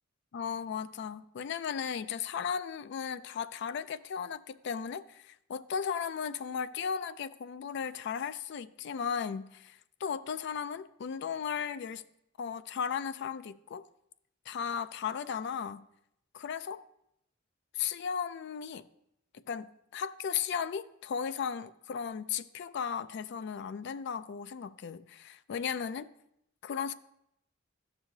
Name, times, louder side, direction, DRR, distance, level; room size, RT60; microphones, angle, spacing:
voice 1, 0.3-12.0 12.4-13.8 14.5-15.8 16.3-16.8 17.7-18.8 19.5-26.1 26.6-26.9, left 7 dB, 60° left, 0.3 m, -36 dB
13.5 x 6.2 x 2.7 m
head